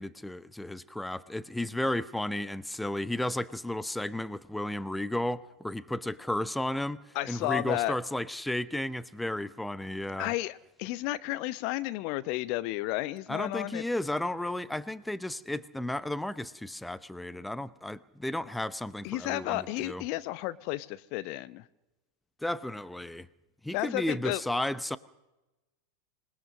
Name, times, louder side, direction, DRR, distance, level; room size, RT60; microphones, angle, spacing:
voice 1, 0.0-10.3 13.3-20.0 22.4-23.3 23.6-25.0, left 1 dB, 5° left, 16 dB, 0.8 m, -33 dB
voice 2, 7.1-7.9 10.2-13.8 19.0-21.6 23.7-24.4, left 17 dB, 45° left, 15 dB, 0.8 m, -32 dB
27.0 x 19.5 x 6.4 m, 0.99 s
figure-of-eight pair, 90°, 0 cm